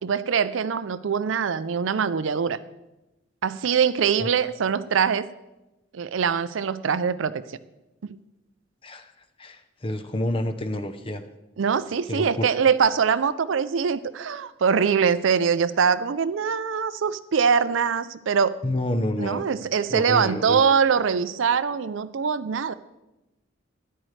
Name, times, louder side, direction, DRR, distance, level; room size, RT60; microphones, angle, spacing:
voice 1, 0.0-2.6 3.4-5.3 5.9-7.6 8.0-8.2 11.6-18.6 19.2-22.7, right 6 dB, 75° right, 14 dB, 0.5 m, -23 dB
voice 2, 9.4-11.2 12.1-12.5 18.6-19.5 19.9-20.6, left 1 dB, 25° left, 9 dB, 0.6 m, -28 dB
13.0 x 10.0 x 3.2 m, 0.98 s
head